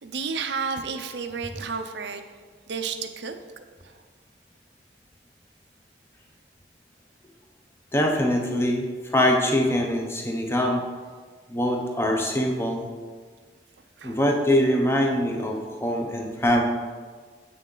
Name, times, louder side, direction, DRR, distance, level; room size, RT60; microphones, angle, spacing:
voice 1, 0.0-2.2 2.7-3.3 3.8-4.0 14.0-14.2, right 5 dB, 80° right, 7 dB, 0.6 m, -31 dB
voice 2, 7.9-10.8 11.5-12.9 14.0-16.6, left 1 dB, 15° left, 2 dB, 0.8 m, -23 dB
7.7 x 6.3 x 3.8 m, 1.5 s
head